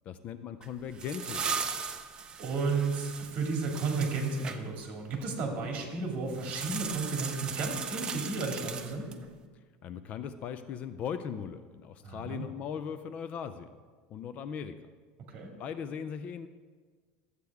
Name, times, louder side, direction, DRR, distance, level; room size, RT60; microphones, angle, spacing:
voice 1, 0.1-1.8 9.8-13.7 14.1-14.8 15.6-16.5, left 7 dB, 40° left, 11 dB, 0.4 m, -39 dB
sound 1, 0.6-4.6 6.3-9.3, right 6 dB, 25° right, 0.7 m, -38 dB
voice 2, 2.4-9.1 12.0-12.4 15.3-15.5, right 4 dB, 40° right, 1 dB, 2.3 m, -33 dB
13.5 x 8.1 x 3.5 m, 1.5 s
supercardioid pair, 145°, 4 cm